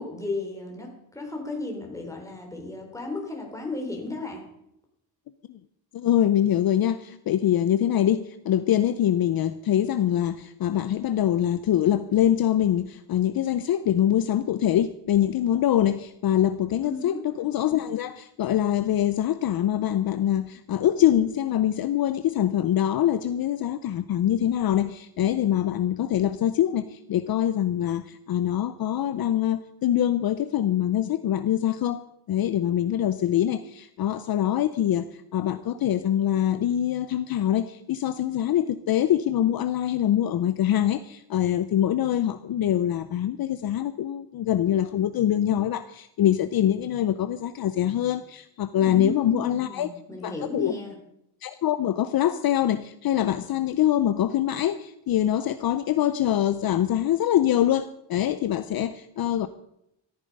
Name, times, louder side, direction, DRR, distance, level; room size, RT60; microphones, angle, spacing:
voice 1, 0.0-4.4 16.8-17.2 48.8-50.9, left 2 dB, 5° left, 1 dB, 3.7 m, -34 dB
voice 2, 5.9-49.9 50.2-50.7 51.4-59.5, left 11 dB, 55° left, 12 dB, 0.7 m, -24 dB
14.0 x 14.0 x 5.4 m, 0.79 s
cardioid pair, 145°, 45 cm